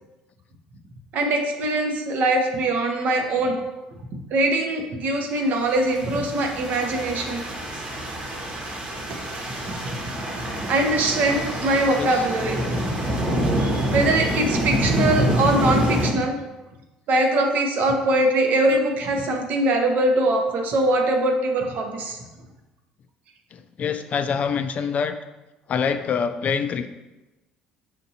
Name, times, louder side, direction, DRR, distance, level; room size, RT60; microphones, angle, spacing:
voice 1, 1.1-3.6 4.3-7.4 10.7-12.5 13.6-16.3 17.1-22.2, right 2 dB, 60° right, 3 dB, 0.8 m, -22 dB
sound 1, 5.7-16.1, right 1 dB, 45° right, 1.1 m, -26 dB
voice 2, 23.5-25.2 25.7-26.9, left 6 dB, 50° left, 9 dB, 0.3 m, -25 dB
5.8 x 2.6 x 2.8 m, 1.0 s
hypercardioid pair, 65°, 3 cm